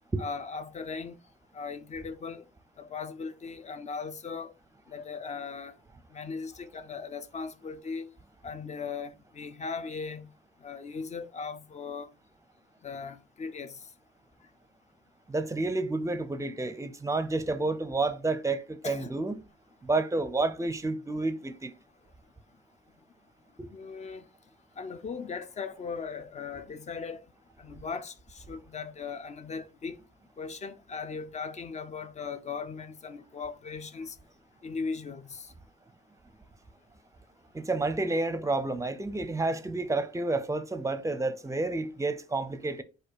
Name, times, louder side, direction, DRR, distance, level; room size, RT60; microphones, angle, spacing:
voice 1, 0.2-1.2 1.5-2.4 2.8-4.5 4.9-5.8 6.1-8.1 8.4-10.3 10.6-12.1 12.8-13.9 18.8-19.1 23.7-24.2 24.8-27.2 27.6-30.0 30.4-34.2 34.6-35.5, left 5 dB, 35° left, 0.6 m, -38 dB
voice 2, 15.3-19.4 19.8-21.7 23.6-23.7 37.5-42.8, right 2 dB, 15° right, 0.6 m, -30 dB
4.3 x 2.5 x 4.6 m
cardioid pair, 90°, 20 cm